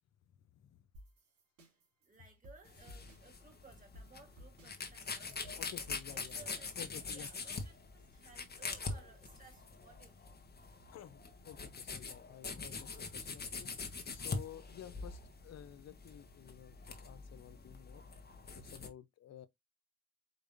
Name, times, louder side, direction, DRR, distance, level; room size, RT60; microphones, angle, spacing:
voice 1, 0.5-0.9 5.6-6.4 6.8-7.3 10.9-13.7 14.1-18.0 18.6-19.5, left 10 dB, 60° left, 0.8 m, -52 dB
sound 1, 0.9-7.3, equal, 85° right, 2.5 m, -59 dB
voice 2, 1.7-6.7 7.1-10.2, right 3 dB, 25° right, 2.8 m, -60 dB
sound 2, 2.6-18.9, left 4 dB, 35° left, 1.2 m, -44 dB
5.1 x 3.3 x 2.6 m
cardioid pair, 90°, 30 cm